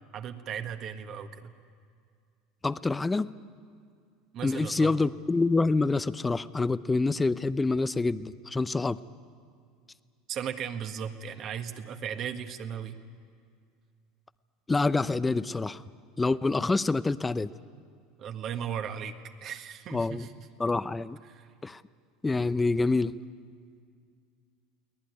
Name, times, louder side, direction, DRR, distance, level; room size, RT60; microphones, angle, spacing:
voice 1, 0.1-1.5 4.3-4.9 10.3-12.9 18.2-20.5 21.3-21.5, right 8 dB, 50° right, 7 dB, 1.6 m, -36 dB
voice 2, 2.6-3.4 4.4-9.0 14.7-15.8 16.2-17.5 19.9-20.3 20.6-21.2 21.6-21.8 22.2-23.1, left 3 dB, 15° left, 15 dB, 0.7 m, -26 dB
23.0 x 18.5 x 9.8 m, 2.2 s
hypercardioid pair, 95°, 0 cm